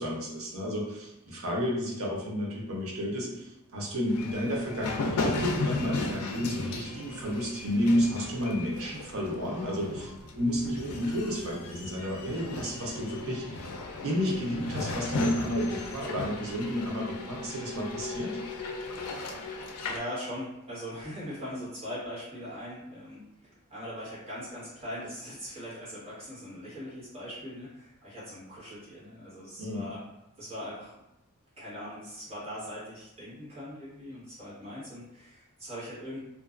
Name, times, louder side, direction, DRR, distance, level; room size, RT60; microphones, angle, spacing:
voice 1, 0.0-13.7 14.0-18.4 29.6-29.9, equal, 70° right, -2 dB, 0.7 m, -31 dB
sound 1, 4.1-20.0, left 3 dB, 90° left, 0.4 m, -36 dB
voice 2, 19.8-30.0 30.4-30.9 31.6-36.2, equal, 30° right, -10 dB, 1.2 m, -41 dB
2.5 x 2.2 x 2.4 m, 0.90 s
head